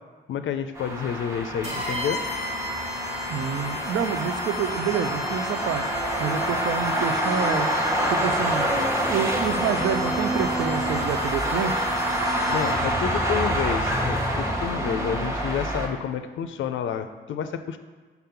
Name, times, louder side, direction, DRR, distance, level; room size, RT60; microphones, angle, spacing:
voice 1, 0.3-2.2 12.5-17.8, left 8 dB, 85° left, 9 dB, 0.4 m, -29 dB
sound 1, 0.8-15.9, right 1 dB, 15° right, 0.9 m, -26 dB
sound 2, 1.6-13.0, left 3 dB, 40° right, 1.2 m, -36 dB
sound 3, 1.6-7.0, left 3 dB, 55° right, 1.0 m, -45 dB
voice 2, 3.3-5.8 6.2-7.7 8.1-8.7 9.0-11.8, right 8 dB, 75° right, 9 dB, 0.5 m, -28 dB
5.7 x 3.7 x 5.7 m, 1.4 s
cardioid pair, 105°, 19 cm